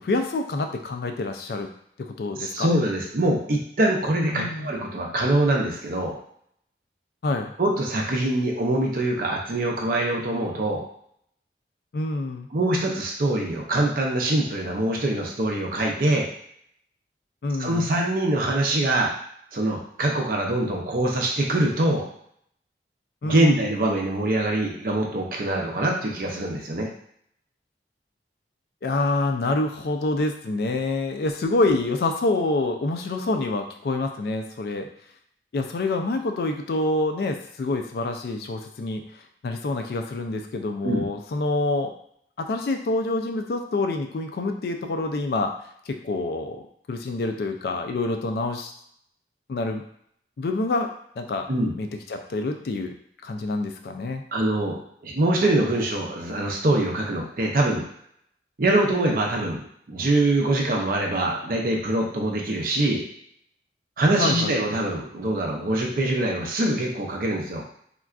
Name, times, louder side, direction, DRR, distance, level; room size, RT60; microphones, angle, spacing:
voice 1, 0.0-1.7 2.0-2.7 4.3-4.7 7.2-7.5 11.9-12.5 17.4-17.9 23.2-23.6 28.8-34.9 35.5-39.0 39.4-41.9 42.4-45.5 45.9-46.6 46.9-48.7 49.5-49.8 50.4-51.5 51.8-52.9 53.2-54.2 64.2-64.6, left 2 dB, 60° left, 5 dB, 0.3 m, -27 dB
voice 2, 2.4-6.2 7.6-10.8 12.5-16.3 17.6-19.1 19.5-22.1 23.2-26.9 40.8-41.1 51.5-51.7 54.3-57.8 58.6-63.0 64.0-67.6, right 1 dB, 50° right, 0 dB, 0.5 m, -24 dB
3.7 x 2.2 x 2.4 m, 0.67 s
head